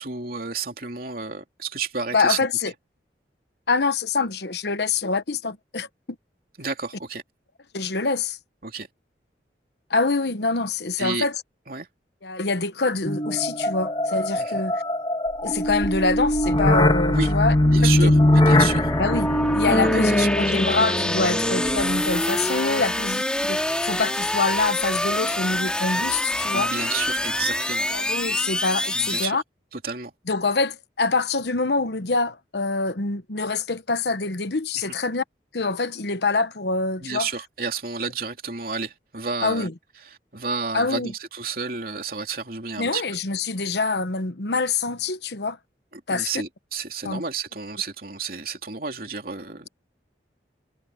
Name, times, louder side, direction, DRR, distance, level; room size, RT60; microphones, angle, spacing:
voice 1, 0.0-2.4 6.6-7.2 8.6-8.9 11.0-11.3 11.7-11.9 14.4-14.6 17.1-17.3 17.6-19.0 19.6-20.6 22.8-22.9 26.5-27.9 28.9-29.4 29.7-30.1 34.8-34.9 37.0-39.7 40.3-43.0 45.9-49.7, right 4 dB, 55° right, 3.0 m, -31 dB
voice 2, 2.1-2.7 3.7-5.9 7.7-8.4 9.9-11.4 12.2-14.8 15.4-17.5 17.8-18.1 19.0-26.7 27.9-29.4 30.3-35.2 35.5-37.3 39.4-39.7 40.7-41.1 42.8-45.6 46.1-46.3 47.0-47.2, left 3 dB, 70° left, 1.1 m, -25 dB
sound 1, 13.1-22.1, left 1 dB, 25° left, 1.4 m, -21 dB
sound 2, 15.3-29.3, left 1 dB, 5° left, 2.9 m, -27 dB
head